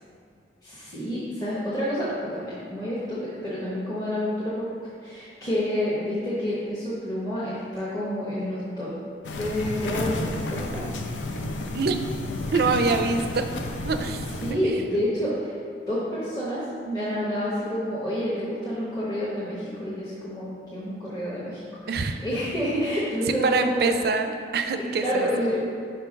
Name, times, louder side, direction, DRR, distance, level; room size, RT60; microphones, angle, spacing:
voice 1, 0.6-4.7 5.0-9.0 9.4-10.8 14.4-15.5 15.9-24.0 24.8-25.6, equal, 20° left, -9 dB, 0.9 m, -29 dB
sound 1, 9.2-14.5, left 2 dB, 90° left, 0.6 m, -31 dB
voice 2, 12.5-13.5 13.8-14.3 14.6-14.8 21.9-22.2 23.4-25.3, right 4 dB, 55° right, 7 dB, 0.4 m, -25 dB
5.1 x 4.5 x 5.1 m, 2.3 s
head